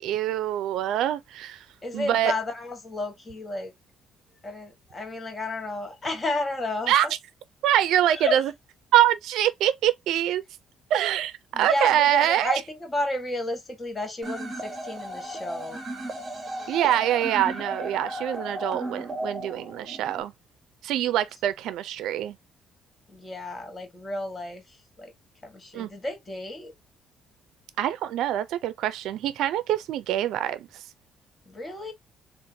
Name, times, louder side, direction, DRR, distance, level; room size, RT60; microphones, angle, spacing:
voice 1, 0.0-1.6 1.9-2.3 6.9-7.1 7.6-8.5 8.9-10.4 10.9-12.6 16.7-20.3 20.8-22.4 25.7-25.9 27.8-30.7, right 12 dB, 80° right, 0.4 m, -24 dB
voice 2, 1.8-3.7 4.4-6.9 8.1-8.4 11.5-15.8 23.1-25.1 25.4-26.7 31.5-31.9, left 2 dB, 25° left, 1.2 m, -32 dB
sound 1, 14.2-20.2, right 1 dB, 30° right, 1.0 m, -35 dB
3.7 x 2.5 x 2.6 m
cardioid pair, 110°, 0 cm